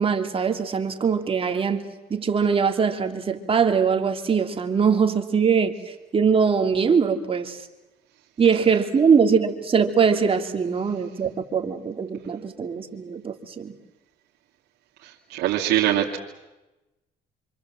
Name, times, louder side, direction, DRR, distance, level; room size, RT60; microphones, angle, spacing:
voice 1, 0.0-1.8 2.1-5.7 6.1-7.6 8.4-13.7, right 6 dB, 35° right, 5 dB, 2.8 m, -22 dB
voice 2, 15.3-16.2, right 12 dB, 80° right, -3 dB, 2.5 m, -22 dB
28.0 x 26.0 x 7.6 m, 1.0 s
cardioid pair, 110°, 17 cm